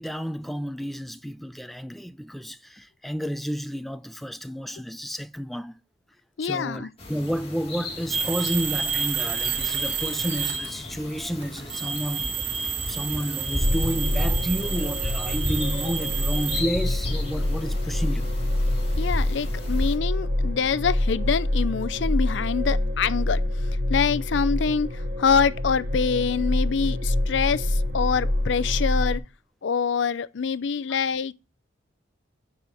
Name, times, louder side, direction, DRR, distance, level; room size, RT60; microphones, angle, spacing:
voice 1, 0.0-5.8 6.4-12.4 12.9-18.3, equal, ahead, 0.4 m, -31 dB
voice 2, 6.4-6.9 19.0-23.4 23.9-29.2 29.6-31.3, left 6 dB, 70° left, 0.5 m, -25 dB
sound 1, 7.0-20.0, left 1 dB, 30° left, 2.2 m, -36 dB
sound 2, 8.1-10.9 11.4-16.6, right 6 dB, 35° right, 3.1 m, -30 dB
sound 3, 13.6-29.2, left 1 dB, 55° right, 3.0 m, -26 dB
9.0 x 4.9 x 6.8 m
head